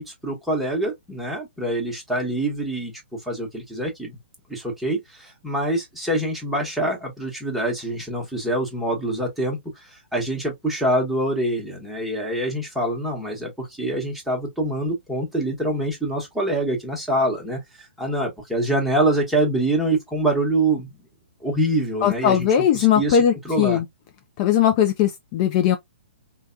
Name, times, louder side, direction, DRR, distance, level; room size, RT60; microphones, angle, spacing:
voice 1, 0.0-2.9 3.2-4.2 4.5-20.9 21.4-23.8, right 1 dB, ahead, 1.1 m, -25 dB
voice 2, 22.0-23.9 24.4-25.8, left 9 dB, 35° left, 0.4 m, -19 dB
3.3 x 2.2 x 2.5 m
hypercardioid pair, 130°, 6 cm